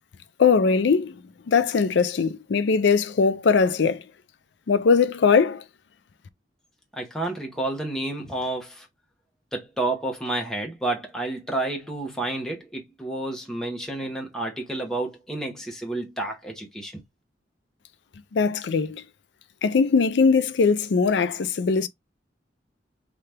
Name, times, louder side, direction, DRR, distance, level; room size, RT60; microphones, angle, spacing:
voice 1, 0.4-1.2 1.5-4.0 4.7-5.6 18.3-19.0 19.6-21.9, left 5 dB, 75° left, 0.4 m, -20 dB
voice 2, 7.0-8.9 9.5-17.0, right 2 dB, 5° left, 0.8 m, -30 dB
2.8 x 2.4 x 3.2 m
head